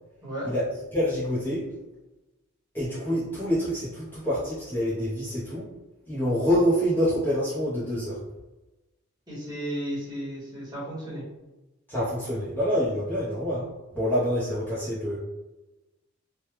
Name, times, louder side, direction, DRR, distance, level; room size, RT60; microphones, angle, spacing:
voice 1, 0.2-0.5 9.3-11.2, equal, 20° right, -8 dB, 1.2 m, -34 dB
voice 2, 0.9-1.7 2.7-5.7 6.1-8.2 11.9-13.7 13.9-15.2, equal, 10° left, -10 dB, 0.7 m, -26 dB
3.3 x 2.2 x 3.0 m, 1.0 s
head